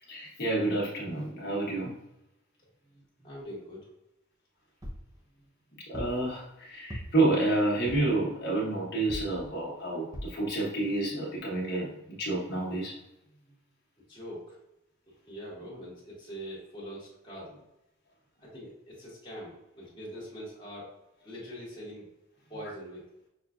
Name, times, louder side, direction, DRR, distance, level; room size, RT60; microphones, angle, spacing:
voice 1, 0.1-1.9 5.9-13.0, right 2 dB, 50° left, -4 dB, 1.3 m, -29 dB
voice 2, 3.2-3.9 14.1-14.6 15.1-17.6 18.4-20.9 21.2-22.1 22.5-23.0, equal, 20° left, -6 dB, 1.5 m, -43 dB
sound 1, 4.8-5.1 5.9-6.2 6.9-7.3 7.9-8.2 9.1-9.4 10.1-10.4 11.0-11.1 11.4-11.5, equal, 15° right, 0.6 m, -40 dB
6.0 x 2.4 x 2.4 m, 0.86 s
head